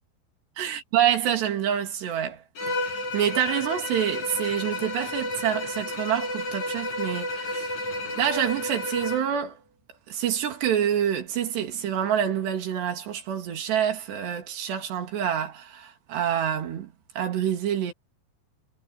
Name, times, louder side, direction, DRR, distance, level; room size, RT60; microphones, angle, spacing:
voice 1, 0.6-2.4 2.7-7.8 8.2-9.6 10.1-17.9, right 9 dB, 75° right, 4.7 m, -27 dB
Bowed string instrument, 2.6-9.3, left 1 dB, 45° left, 6.4 m, -31 dB
omnidirectional pair, 4.9 m